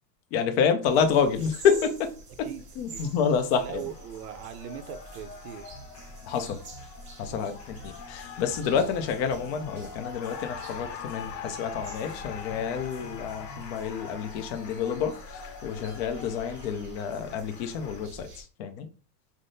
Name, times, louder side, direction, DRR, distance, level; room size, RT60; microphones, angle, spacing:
voice 1, 0.3-2.1 2.4-2.5 2.8-3.8 6.3-6.6 7.2-18.9, left 6 dB, 45° left, 0.5 m, -28 dB
sound 1, 0.8-18.4, right 1 dB, 25° right, 0.8 m, -48 dB
Cheering, 2.9-18.1, left 7 dB, 80° left, 0.8 m, -44 dB
voice 2, 3.6-5.6 7.3-7.5, right 10 dB, 60° right, 0.5 m, -40 dB
sound 2, 5.7-13.7, right 2 dB, 20° left, 1.3 m, -50 dB
3.5 x 2.0 x 2.6 m
supercardioid pair, 145°, 49 cm